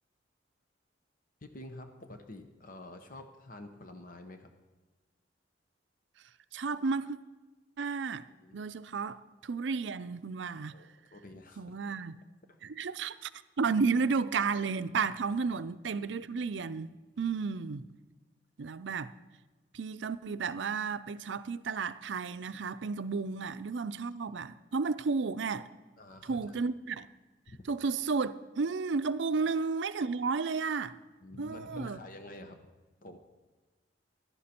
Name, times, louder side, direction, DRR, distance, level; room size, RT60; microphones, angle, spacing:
voice 1, 1.5-4.5 8.4-8.7 10.7-12.0 15.3-15.4 26.0-26.6 27.5-27.7 31.2-32.7 33.0-33.2, left 1 dB, 50° left, 0.9 m, -48 dB
voice 2, 6.5-7.2 7.8-8.3 8.5-10.8 11.6-12.2 12.6-13.3 13.6-17.9 18.6-19.1 19.7-25.7 26.2-27.1 27.7-31.0 31.4-32.0, right 4 dB, 70° right, 0.5 m, -32 dB
14.5 x 11.5 x 4.4 m
head